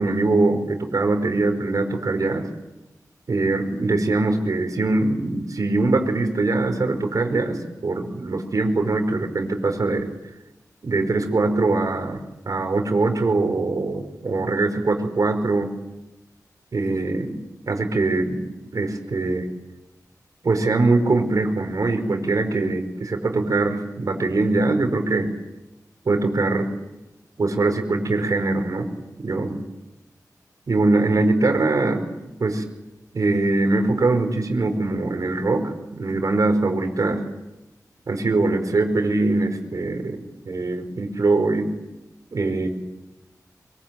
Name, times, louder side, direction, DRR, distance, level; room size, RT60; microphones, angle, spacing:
voice 1, 0.0-2.5 3.3-10.1 10.8-15.7 16.7-17.4 17.7-18.5 18.7-19.5 20.4-25.3 26.0-26.7 27.4-28.9 29.2-29.6 30.7-32.0 32.4-32.6 33.1-37.2 38.1-41.7 42.3-42.7, right 2 dB, 60° right, 4 dB, 5.1 m, -22 dB
24.5 x 23.5 x 9.1 m, 0.99 s
wide cardioid pair, 110°, 7 cm